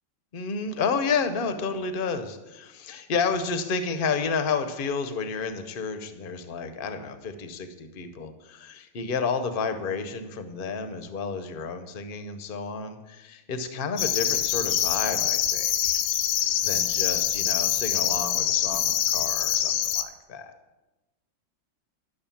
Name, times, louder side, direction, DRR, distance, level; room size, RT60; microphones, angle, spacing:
voice 1, 0.3-16.0 16.6-20.5, left 5 dB, 45° left, 9 dB, 0.7 m, -31 dB
sound 1, 14.0-20.0, left 11 dB, 75° left, 1.3 m, -25 dB
12.0 x 6.6 x 7.2 m, 1.1 s
omnidirectional pair, 2.1 m